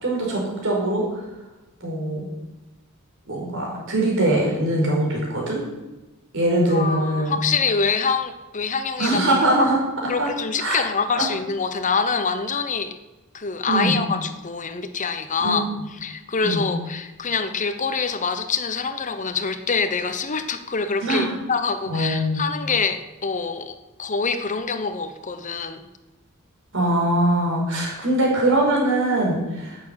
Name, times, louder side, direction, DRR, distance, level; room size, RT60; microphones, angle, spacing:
voice 1, 0.0-1.0 1.8-2.2 3.3-5.6 6.3-7.4 9.0-9.8 10.0-10.3 10.6-10.8 11.2-11.3 13.7-14.0 15.4-15.6 16.4-16.7 21.0-21.3 21.9-22.4 26.7-29.8, right 1 dB, 60° right, -2 dB, 5.2 m, -22 dB
voice 2, 6.7-9.4 10.1-12.9 13.3-15.7 16.0-25.9, left 5 dB, 35° left, 9 dB, 0.9 m, -25 dB
11.0 x 8.6 x 8.7 m, 1.1 s
head